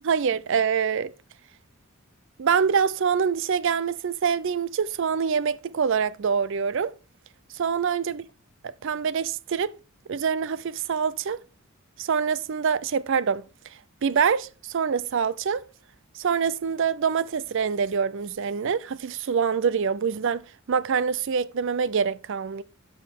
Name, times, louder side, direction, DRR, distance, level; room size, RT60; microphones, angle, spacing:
voice 1, 0.0-1.1 2.4-6.9 7.5-8.2 8.8-9.7 10.1-11.4 12.0-13.4 14.0-15.6 16.1-20.4 20.7-22.6, right 6 dB, 60° right, 0.4 m, -25 dB
12.5 x 4.9 x 3.6 m
head